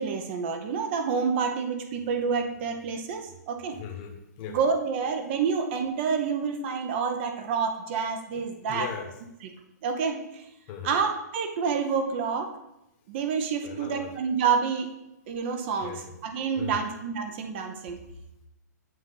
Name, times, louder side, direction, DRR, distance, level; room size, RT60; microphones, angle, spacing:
voice 1, 0.0-3.8 4.5-8.9 9.8-10.4 10.8-12.5 13.1-14.9 15.3-18.0, right 6 dB, 40° right, 5 dB, 0.7 m, -28 dB
voice 2, 3.7-4.6 8.3-9.1 10.7-11.0 13.6-14.1 15.8-16.0 16.6-16.9, left 8 dB, 35° left, 3 dB, 1.0 m, -39 dB
7.8 x 2.6 x 5.6 m, 0.87 s
hypercardioid pair, 140°, 9 cm